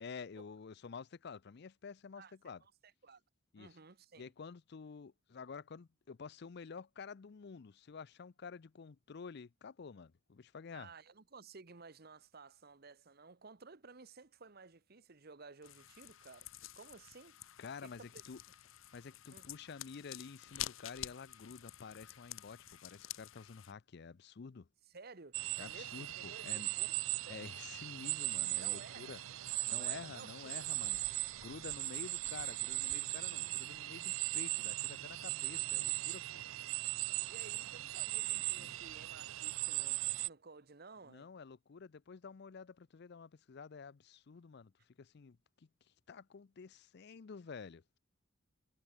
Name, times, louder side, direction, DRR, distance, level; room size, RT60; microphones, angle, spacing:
voice 1, 0.0-2.6 3.5-3.8 4.2-10.9 17.6-18.4 18.9-24.7 25.6-26.7 27.3-29.2 29.7-36.4 38.3-38.8 41.0-44.7 45.0-45.7 46.1-48.0, left 5 dB, 55° left, 0.5 m, -50 dB
voice 2, 2.2-3.2 3.6-4.3 10.7-16.5 16.7-17.4 17.8-18.2 19.3-19.5 24.9-27.0 27.3-27.5 28.6-29.1 29.5-30.3 37.3-41.3, right 4 dB, 50° right, 1.1 m, -55 dB
sound 1, 15.6-23.7, left 13 dB, 85° left, 1.0 m, -49 dB
sound 2, 25.3-40.3, right 18 dB, 85° right, 0.5 m, -38 dB
head